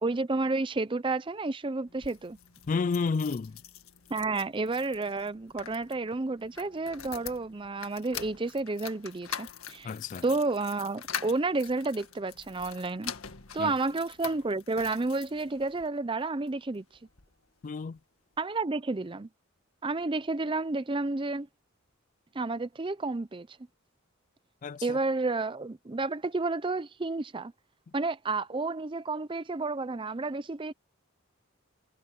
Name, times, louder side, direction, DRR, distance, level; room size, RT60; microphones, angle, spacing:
voice 1, 0.0-2.4 4.1-9.9 10.2-13.1 13.5-16.8 18.4-19.3 19.8-21.5 22.3-23.5 24.8-27.5 27.9-30.7, right 3 dB, 25° right, 0.5 m, -31 dB
sound 1, 1.9-15.9 16.5-17.3 17.6-17.7 18.0-18.1, left 8 dB, 85° left, 1.8 m, -44 dB
voice 2, 2.7-3.6 9.8-10.2 13.6-13.7 17.6-18.0 24.6-25.0, left 4 dB, 35° left, 0.3 m, -31 dB
head